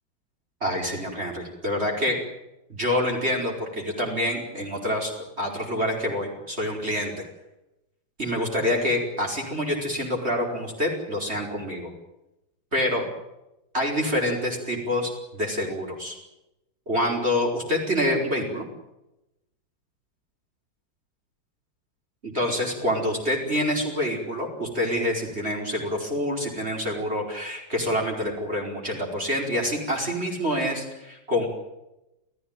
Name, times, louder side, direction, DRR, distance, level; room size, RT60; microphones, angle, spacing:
voice 1, 0.6-2.2 2.7-5.1 5.4-7.2 8.2-11.9 12.7-13.0 13.7-16.2 16.9-18.6 22.2-31.5, left 1 dB, 35° right, 0 dB, 5.1 m, -26 dB
28.5 x 15.5 x 9.0 m, 0.92 s
omnidirectional pair, 2.0 m